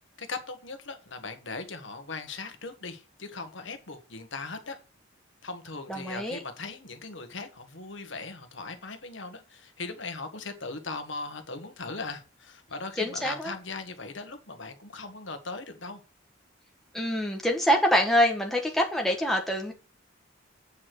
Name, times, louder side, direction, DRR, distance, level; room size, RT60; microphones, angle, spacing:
voice 1, 0.2-4.8 5.4-16.0, left 3 dB, 65° left, 1.5 m, -39 dB
voice 2, 5.9-6.4 13.0-13.5 16.9-19.7, equal, ahead, 1.4 m, -25 dB
8.5 x 4.9 x 6.1 m
head